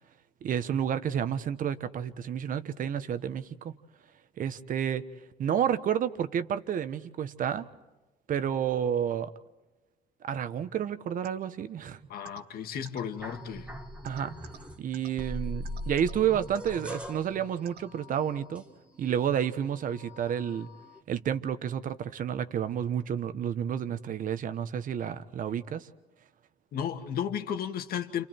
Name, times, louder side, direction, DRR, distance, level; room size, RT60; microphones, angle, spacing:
voice 1, 0.4-3.8 4.4-5.0 5.4-7.7 8.3-9.3 10.2-12.0 14.0-14.3 14.8-18.6 19.0-20.7 21.1-25.9, right 9 dB, 55° right, 1.3 m, -30 dB
sound 1, 11.2-11.3 12.2-12.4 12.8-13.0 14.0-14.6 14.9-15.1 15.6-16.1 16.5-16.7 17.6-17.8, right 8 dB, 70° right, 2.3 m, -46 dB
voice 2, 12.1-13.7 26.7-28.3, left 8 dB, 65° left, 2.0 m, -34 dB
sound 2, 13.2-14.8 15.2-19.2 19.5-21.0, equal, 5° right, 1.7 m, -41 dB
29.5 x 29.0 x 4.5 m
cardioid pair, 110°, 17 cm